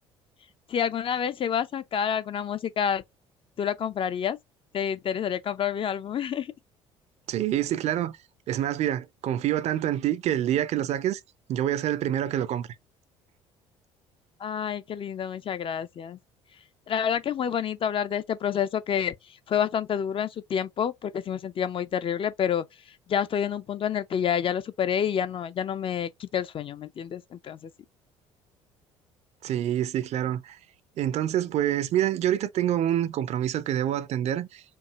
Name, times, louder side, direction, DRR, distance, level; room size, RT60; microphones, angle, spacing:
voice 1, 0.7-3.0 3.6-4.4 4.7-6.5 14.4-16.2 16.9-19.1 19.5-22.6 23.1-27.7, left 8 dB, 35° left, 0.5 m, -28 dB
voice 2, 7.3-8.2 8.5-11.2 11.5-12.7 29.4-30.6 31.0-34.6, right 11 dB, 45° right, 0.5 m, -26 dB
4.6 x 2.7 x 2.9 m
figure-of-eight pair, 55°, 16 cm